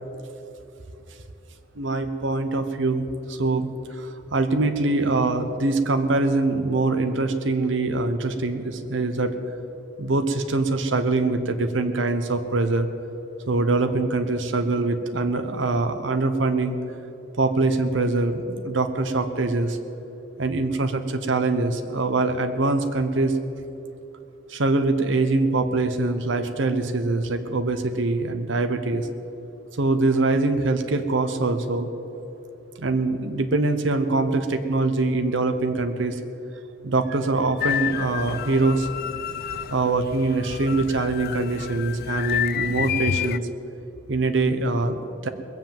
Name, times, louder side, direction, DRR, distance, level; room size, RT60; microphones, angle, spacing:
voice 1, 1.8-9.3 10.0-12.9 13.5-16.8 17.4-19.8 20.4-23.4 24.5-29.1 29.8-31.9 32.8-36.2 36.8-38.9 39.7-43.4 44.1-45.3, right 3 dB, 70° right, 7 dB, 0.8 m, -23 dB
sound 1, 37.6-43.4, left 10 dB, 50° left, 0.3 m, -29 dB
21.0 x 7.5 x 7.4 m, 3.0 s
head